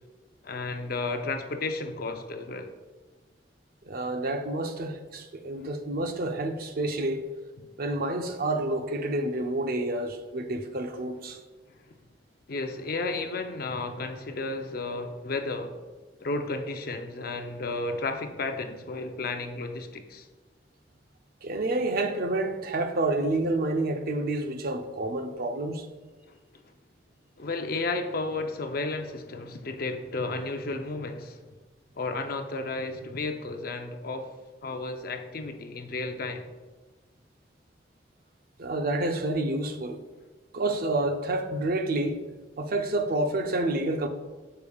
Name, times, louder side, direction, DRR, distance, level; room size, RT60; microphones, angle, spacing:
voice 1, 0.4-2.7 7.6-7.7 12.5-15.8 16.2-20.3 26.3-26.4 27.4-31.4 32.0-34.3 34.6-36.5, left 3 dB, 55° left, 0.6 m, -33 dB
voice 2, 3.8-7.2 7.8-11.4 21.4-25.9 38.6-40.0 40.5-42.2 42.6-44.1, right 2 dB, 55° right, 0.6 m, -29 dB
8.4 x 6.8 x 2.3 m
head